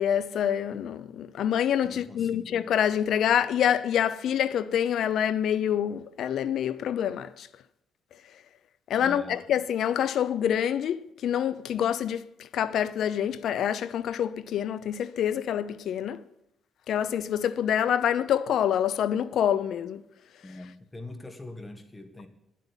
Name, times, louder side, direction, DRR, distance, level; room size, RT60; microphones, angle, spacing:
voice 1, 0.0-7.5 8.9-12.2 12.5-16.2 16.9-20.0, left 9 dB, 70° left, 0.6 m, -26 dB
voice 2, 1.8-2.5 9.0-9.4 20.4-22.3, left 2 dB, 15° left, 1.9 m, -43 dB
10.5 x 8.4 x 9.9 m
cardioid pair, 90°, 0 cm